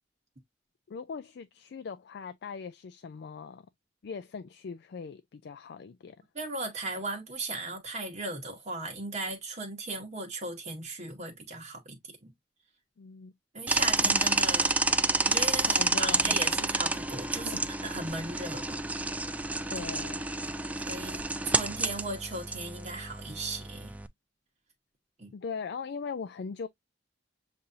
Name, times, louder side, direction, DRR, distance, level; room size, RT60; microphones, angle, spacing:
voice 1, 0.9-3.7 4.0-6.2 13.0-13.3 14.0-14.3 15.6-16.6 17.4-17.6 19.7-20.3 25.3-26.7, left 5 dB, 65° left, 0.4 m, -40 dB
voice 2, 6.3-12.3 13.5-14.7 15.2-18.8 20.9-23.9 25.2-25.3, right 2 dB, 40° right, 1.2 m, -37 dB
sound 1, 13.7-24.1, right 2 dB, 10° right, 0.3 m, -29 dB
7.0 x 2.6 x 2.6 m
head